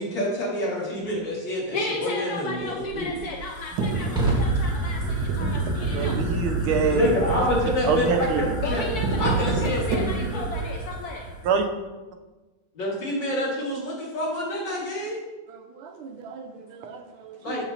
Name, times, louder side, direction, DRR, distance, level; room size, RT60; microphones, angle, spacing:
voice 1, 0.0-3.1 6.9-8.9 9.2-10.4 12.8-15.2 17.4-17.7, left 1 dB, 55° left, -5 dB, 2.6 m, -27 dB
voice 2, 1.7-6.2 8.6-11.3, left 3 dB, 85° left, 2 dB, 0.8 m, -34 dB
Fire, 2.6-11.6, right 3 dB, 5° right, 0.9 m, -30 dB
sound 1, 3.8-10.5, right 3 dB, 65° right, 1.1 m, -30 dB
voice 3, 5.9-7.1 7.8-8.5 11.4-11.7 15.5-17.6, right 5 dB, 85° right, 5 dB, 1.6 m, -27 dB
7.2 x 7.0 x 2.8 m, 1.2 s
omnidirectional pair, 2.4 m